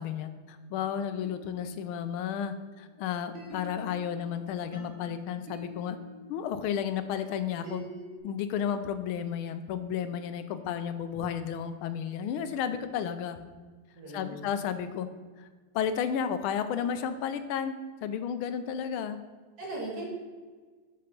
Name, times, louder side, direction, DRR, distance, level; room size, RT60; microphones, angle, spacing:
voice 1, 0.0-6.0 6.3-7.8 8.2-13.4 14.1-15.1 15.4-15.5 15.7-17.7 18.0-19.2, left 8 dB, 85° left, 10 dB, 1.5 m, -32 dB
sound 1, 1.1-2.9 3.3-8.2, right 1 dB, 85° right, 3.1 m, -47 dB
voice 2, 13.9-14.5 19.6-20.1, right 1 dB, 45° right, -4 dB, 2.5 m, -38 dB
6.4 x 5.8 x 5.2 m, 1.4 s
omnidirectional pair, 2.3 m